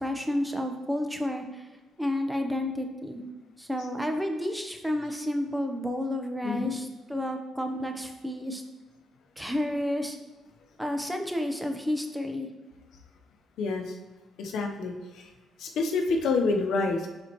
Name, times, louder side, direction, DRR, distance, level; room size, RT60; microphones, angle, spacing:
voice 1, 0.0-1.7 2.0-3.2 3.6-8.6 9.4-10.2 10.8-12.5, left 1 dB, 5° right, 4 dB, 0.9 m, -31 dB
voice 2, 6.4-6.8 13.6-13.9 14.4-15.3 15.6-17.1, left 3 dB, 80° left, 3 dB, 0.9 m, -28 dB
10.5 x 4.3 x 3.0 m, 1.2 s
cardioid pair, 90°, 0 cm